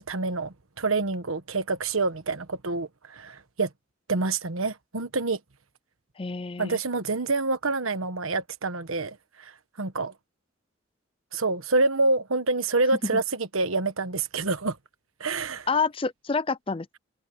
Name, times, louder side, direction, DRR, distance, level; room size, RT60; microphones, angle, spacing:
voice 1, 0.0-3.7 4.1-5.4 6.6-9.5 9.8-10.1 11.3-14.8 15.2-15.7, right 3 dB, 85° right, 1.4 m, -27 dB
voice 2, 6.2-6.8 13.1-13.2 15.7-17.0, left 4 dB, 25° left, 0.5 m, -28 dB
head